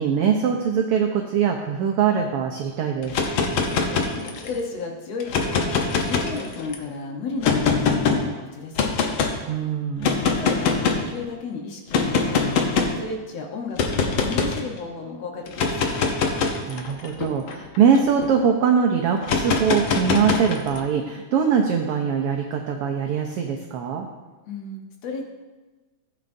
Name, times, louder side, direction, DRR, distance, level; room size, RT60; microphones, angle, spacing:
voice 1, 0.0-3.2 9.5-10.2 16.7-24.1, right 7 dB, 90° right, 3 dB, 1.2 m, -22 dB
sound 1, 3.0-4.6 5.2-6.7 7.4-8.2 8.8-9.3 10.0-11.1 11.9-13.0 13.8-14.6 15.5-18.3 19.2-20.8, left 5 dB, 90° left, 1.1 m, -23 dB
voice 2, 3.7-4.0 4.4-8.9 10.2-12.6 13.0-16.2 24.5-25.2, left 4 dB, 65° left, 2 dB, 2.0 m, -33 dB
15.0 x 8.0 x 2.6 m, 1.2 s
omnidirectional pair, 3.4 m